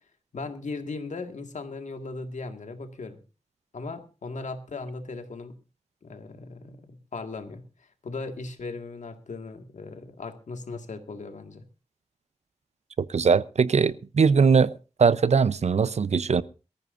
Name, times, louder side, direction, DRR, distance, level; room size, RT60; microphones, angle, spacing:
voice 1, 0.3-3.2 3.7-5.6 6.0-11.7, left 3 dB, 90° left, 6 dB, 2.0 m, -38 dB
voice 2, 13.0-14.7 15.0-16.4, right 5 dB, 65° right, 17 dB, 0.7 m, -21 dB
23.0 x 14.5 x 2.6 m, 0.32 s
wide cardioid pair, 105°, 12 cm